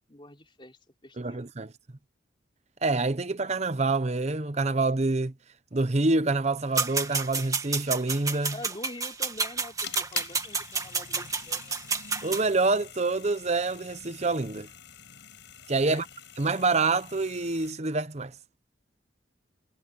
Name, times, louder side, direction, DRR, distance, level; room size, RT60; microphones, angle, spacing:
voice 1, 0.1-1.4 8.5-11.8 15.8-16.1, left 1 dB, 25° left, 3.6 m, -45 dB
voice 2, 1.2-1.7 2.8-5.3 5.7-8.6 12.2-14.7 15.7-16.0 16.4-18.3, right 3 dB, 35° right, 0.9 m, -26 dB
sound 1, 6.8-12.4, right 5 dB, 20° right, 2.1 m, -30 dB
sound 2, 9.3-17.7, left 9 dB, 70° left, 6.2 m, -45 dB
head